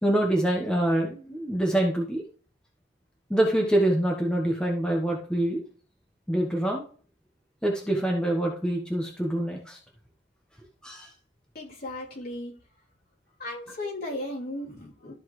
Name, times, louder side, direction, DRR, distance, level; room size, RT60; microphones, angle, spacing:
voice 1, 0.0-2.2 3.3-5.6 6.3-6.8 7.6-9.8 10.8-11.1, right 1 dB, 5° left, 0 dB, 1.2 m, -25 dB
voice 2, 11.5-12.6 13.4-15.1, left 1 dB, 50° left, -4 dB, 3.4 m, -36 dB
13.0 x 5.6 x 3.2 m, 0.42 s
head